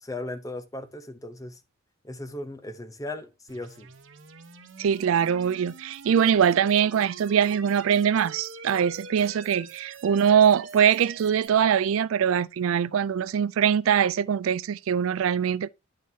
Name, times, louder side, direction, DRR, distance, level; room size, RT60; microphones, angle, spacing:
voice 1, 0.0-1.6 2.0-3.9, left 2 dB, 15° left, 0.7 m, -37 dB
sound 1, 3.5-11.5, right 5 dB, 65° right, 1.0 m, -44 dB
voice 2, 4.8-15.7, right 8 dB, 85° right, 0.3 m, -22 dB
10.5 x 6.5 x 2.7 m
head